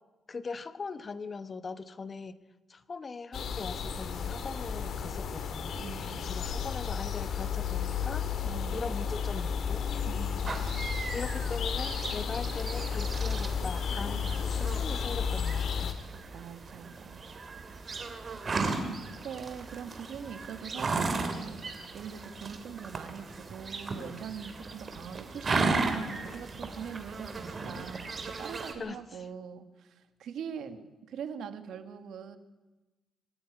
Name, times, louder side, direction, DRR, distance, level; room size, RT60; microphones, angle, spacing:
voice 1, 0.3-2.4 2.7-5.8 6.3-8.3 8.7-9.9 11.1-16.0 28.8-29.2, left 4 dB, 30° left, 13 dB, 1.1 m, -40 dB
sound 1, 3.3-15.9, left 7 dB, 60° left, 2.1 m, -33 dB
voice 2, 5.7-6.4 8.4-9.0 10.1-10.6 14.1-14.5 16.3-17.4 18.8-32.4, right 7 dB, 70° right, 10 dB, 1.8 m, -42 dB
sound 2, 10.5-28.7, right 3 dB, 35° right, 2.7 m, -36 dB
26.0 x 10.5 x 9.9 m, 1.1 s
cardioid pair, 120°, 0 cm